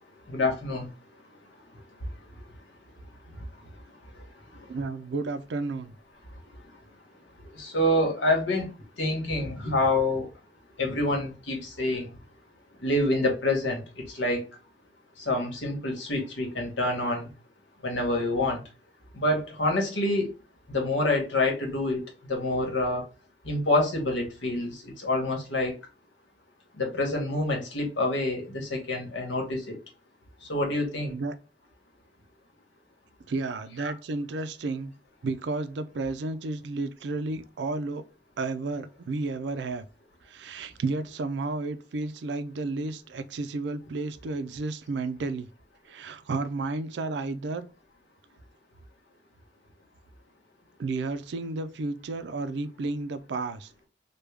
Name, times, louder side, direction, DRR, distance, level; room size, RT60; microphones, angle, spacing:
voice 1, 0.3-0.9 2.0-2.1 3.3-3.4 4.1-4.3 4.5-4.7 7.4-10.3 10.8-12.2 12.8-14.5 15.2-17.3 17.8-18.6 19.1-20.3 20.7-23.0 23.4-25.7 26.8-29.7 30.4-31.1 33.8-33.9, left 2 dB, 80° left, 1.1 m, -27 dB
voice 2, 4.7-5.9 31.1-31.4 33.3-34.9 35.2-38.0 38.4-39.8 40.3-45.5 45.9-47.7 50.8-53.7, right 3 dB, 65° right, 0.4 m, -32 dB
3.4 x 2.2 x 3.2 m
head